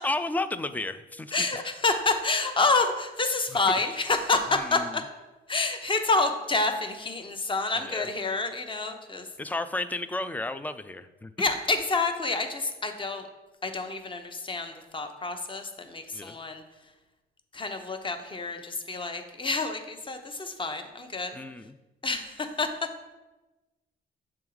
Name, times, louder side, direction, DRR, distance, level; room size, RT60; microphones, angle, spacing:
voice 1, 0.0-1.5 4.5-5.0 7.8-8.1 9.4-11.3 16.1-16.4 21.3-21.7, left 2 dB, 10° left, 12 dB, 0.3 m, -32 dB
voice 2, 1.3-5.0 5.5-9.3 11.4-13.2 13.6-16.6 17.5-21.4 22.0-22.7, left 3 dB, 25° left, 6 dB, 0.7 m, -28 dB
6.9 x 3.6 x 4.7 m, 1.1 s
cardioid pair, 90°, 20 cm